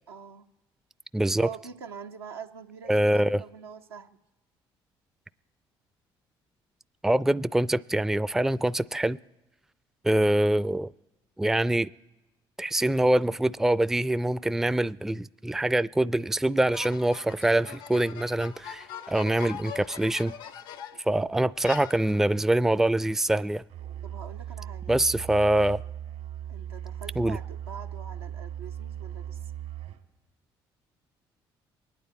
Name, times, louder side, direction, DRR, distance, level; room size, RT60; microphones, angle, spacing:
voice 1, 0.1-0.5 1.4-4.2 20.9-21.3 24.0-25.0 26.5-29.5, right 6 dB, 90° right, 0.7 m, -44 dB
voice 2, 1.1-1.5 2.9-3.4 7.0-9.2 10.0-10.9 11.4-11.9 12.6-20.3 21.1-23.6 24.9-25.8 27.2-27.4, right 1 dB, 5° right, 0.4 m, -24 dB
sound 1, 16.7-21.1 21.6-22.4, left 9 dB, 80° left, 0.7 m, -42 dB
Musical instrument, 23.7-30.1, right 10 dB, 75° right, 1.8 m, -38 dB
24.0 x 9.4 x 4.2 m
hypercardioid pair, 50°, 13 cm